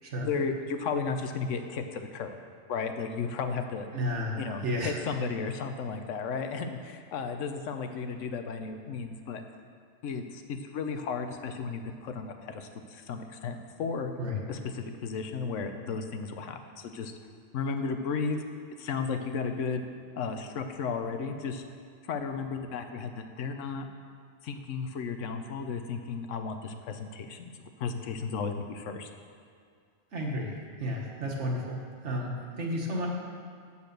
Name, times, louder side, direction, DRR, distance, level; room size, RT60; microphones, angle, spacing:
voice 1, 0.3-2.3 2.7-3.9 4.4-9.4 10.0-14.1 14.5-17.1 17.5-18.4 18.8-19.9 20.1-21.6 22.0-23.9 24.4-29.1, left 5 dB, 80° left, 6 dB, 1.1 m, -34 dB
voice 2, 3.9-5.0 14.2-14.4 30.1-30.5 30.8-33.1, equal, 70° right, -1 dB, 1.7 m, -32 dB
8.2 x 7.0 x 6.6 m, 2.2 s
omnidirectional pair, 1.3 m